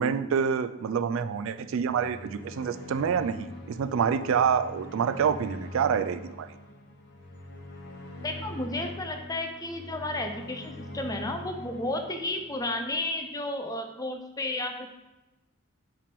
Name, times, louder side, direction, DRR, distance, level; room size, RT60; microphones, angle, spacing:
voice 1, 0.0-6.5, right 7 dB, 65° right, 10 dB, 0.3 m, -27 dB
sound 1, 1.7-13.0, left 1 dB, 50° left, 0.9 m, -43 dB
voice 2, 8.2-14.9, left 2 dB, 15° left, 4 dB, 0.5 m, -32 dB
5.6 x 3.4 x 5.2 m, 1.1 s
head